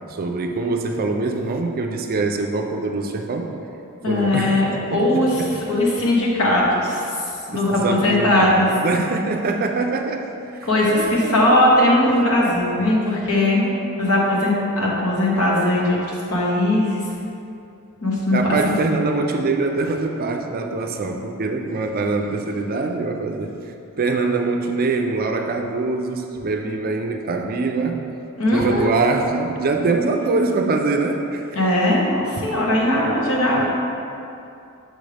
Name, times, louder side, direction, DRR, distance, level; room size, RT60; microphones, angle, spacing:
voice 1, 0.1-3.6 4.1-5.6 7.5-11.6 13.6-14.0 18.3-23.5 24.0-28.0 28.5-31.5 32.4-32.5, right 3 dB, 40° right, 3 dB, 0.4 m, -24 dB
voice 2, 4.0-7.0 7.5-8.7 10.6-13.6 14.0-16.0 16.3-17.1 18.0-18.8 28.4-28.9 31.5-33.7, left 1 dB, 70° left, -4 dB, 1.2 m, -19 dB
6.2 x 5.1 x 3.3 m, 2.7 s
head